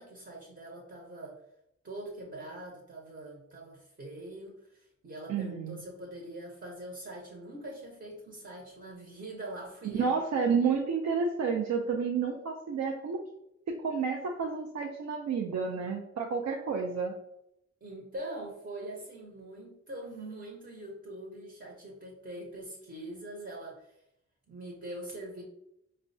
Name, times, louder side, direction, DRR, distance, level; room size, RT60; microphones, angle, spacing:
voice 1, 0.0-1.4 1.8-10.2 17.8-24.0 24.5-25.4, right 1 dB, 40° right, -2 dB, 0.8 m, -43 dB
voice 2, 5.3-5.8 9.9-13.2 13.7-17.1, right 5 dB, 65° right, 1 dB, 0.5 m, -30 dB
4.4 x 2.1 x 2.6 m, 0.80 s
cardioid pair, 80°, 29 cm